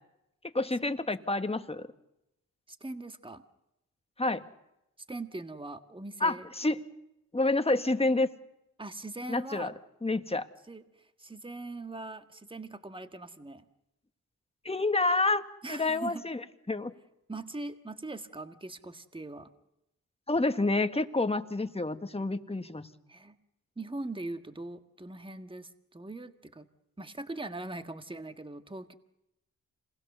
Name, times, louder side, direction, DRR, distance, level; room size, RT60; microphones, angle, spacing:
voice 1, 0.4-1.9 4.2-4.4 6.2-6.8 7.3-8.3 9.3-9.7 10.0-10.4 14.6-16.4 16.7-16.9 20.3-22.9, left 2 dB, 15° left, 9 dB, 1.6 m, -28 dB
voice 2, 2.7-3.4 5.1-6.5 8.8-9.8 10.7-13.6 15.6-16.2 17.3-19.5 23.1-23.4 23.7-26.7 27.0-28.9, right 2 dB, 15° right, 8 dB, 1.7 m, -41 dB
27.0 x 20.5 x 6.8 m, 0.88 s
supercardioid pair, 45°, 34 cm